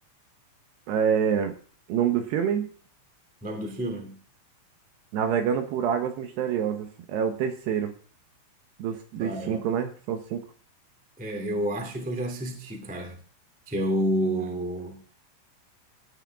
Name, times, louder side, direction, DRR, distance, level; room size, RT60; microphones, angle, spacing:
voice 1, 0.9-1.5 1.9-2.7 5.1-7.9 8.8-10.4, right 8 dB, 70° right, 6 dB, 2.8 m, -26 dB
voice 2, 3.4-4.2 9.2-9.7 11.2-13.2 13.7-15.0, equal, 5° right, 3 dB, 0.9 m, -29 dB
18.0 x 10.0 x 3.6 m, 0.42 s
omnidirectional pair, 5.6 m